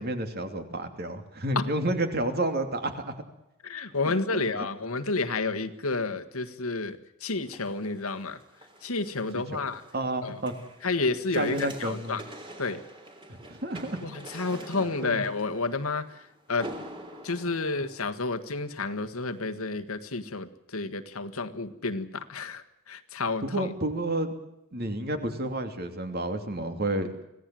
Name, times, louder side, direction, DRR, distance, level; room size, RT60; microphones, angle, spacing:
voice 1, 0.0-3.1 4.0-4.7 9.3-9.7 9.9-10.5 11.3-12.2 13.3-14.0 14.4-15.2 23.4-24.3 24.7-27.3, right 1 dB, 45° right, 6 dB, 2.9 m, -31 dB
voice 2, 3.6-8.4 8.8-9.8 10.2-10.4 10.8-12.2 12.6-12.8 14.0-16.1 16.5-16.7 17.2-23.7, left 3 dB, 75° left, 8 dB, 1.7 m, -30 dB
sound 1, 7.4-18.7 19.2-19.3, right 1 dB, 25° right, 3.5 m, -46 dB
26.0 x 17.0 x 7.7 m, 0.87 s
head